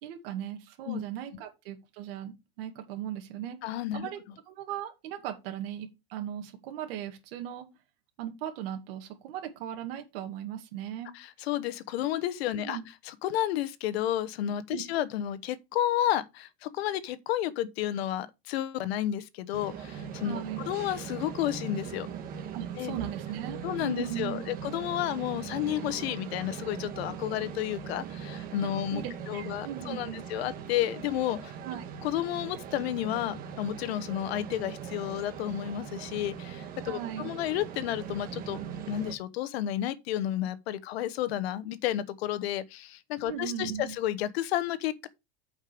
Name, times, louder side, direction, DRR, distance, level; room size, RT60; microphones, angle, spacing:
voice 1, 0.0-3.6 3.9-4.2 4.5-7.7 8.2-11.1 12.5-12.9 14.7-14.8 20.2-20.6 22.5-24.4 28.6-30.2 31.6-31.8 36.9-37.3 43.3-44.0, right 10 dB, 65° right, 2.2 m, -38 dB
voice 2, 3.6-4.1 11.1-12.8 13.0-22.1 22.8-23.0 23.6-31.5 32.0-38.6 38.9-45.1, left 12 dB, 75° left, 1.1 m, -31 dB
sound 1, 19.5-39.1, right 7 dB, 30° right, 1.3 m, -40 dB
8.6 x 5.3 x 5.0 m
supercardioid pair, 170°, 31 cm